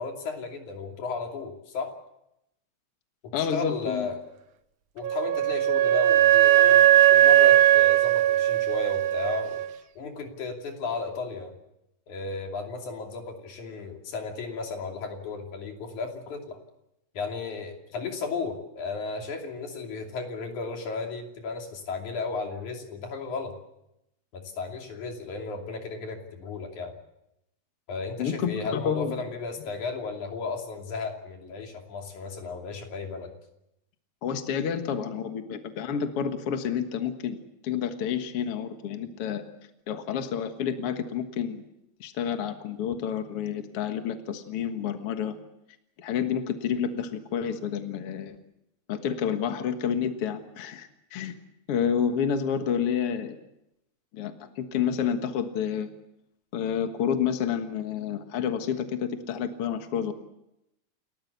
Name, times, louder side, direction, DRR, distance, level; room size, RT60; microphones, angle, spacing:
voice 1, 0.0-1.9 3.2-4.2 5.0-9.6 10.0-11.5 12.1-16.6 17.1-23.6 24.3-26.9 27.9-33.3, left 4 dB, 85° left, 3 dB, 4.3 m, -34 dB
voice 2, 3.3-4.1 28.2-29.2 34.2-37.4 37.6-39.4 39.9-41.6 42.0-45.4 46.0-48.4 48.9-51.3 51.7-53.4 54.1-55.9 56.5-60.1, left 8 dB, 55° left, 7 dB, 2.2 m, -29 dB
Wind instrument woodwind instrument, 5.0-9.7, right 13 dB, 60° right, 1.4 m, -19 dB
29.5 x 14.0 x 8.2 m, 0.85 s
omnidirectional pair, 3.3 m